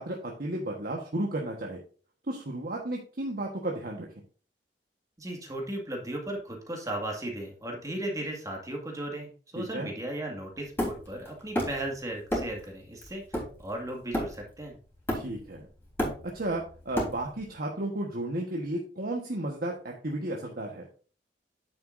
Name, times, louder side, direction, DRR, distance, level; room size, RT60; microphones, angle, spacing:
voice 1, 0.0-1.8 2.3-4.1 9.6-9.9 15.1-15.7 16.3-20.9, right 1 dB, 60° right, 0 dB, 1.3 m, -33 dB
voice 2, 5.2-14.8, right 1 dB, 20° right, 1 dB, 2.0 m, -36 dB
Hammer, 10.8-11.9 12.3-12.6 13.0-14.6 15.1-15.5 15.8-17.5, equal, 15° left, 3.6 m, -32 dB
9.4 x 7.7 x 2.6 m, 0.38 s
head